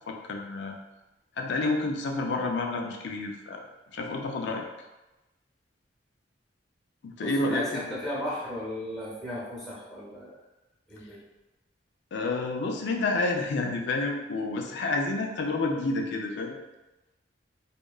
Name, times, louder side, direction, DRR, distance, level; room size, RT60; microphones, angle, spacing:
voice 1, 0.1-0.8 1.4-3.6 3.9-4.6 7.0-7.9 12.1-16.6, left 2 dB, 65° left, 2 dB, 0.4 m, -29 dB
voice 2, 7.2-10.3 10.9-11.2, left 1 dB, ahead, -8 dB, 0.9 m, -35 dB
2.8 x 2.2 x 2.3 m, 1.0 s
head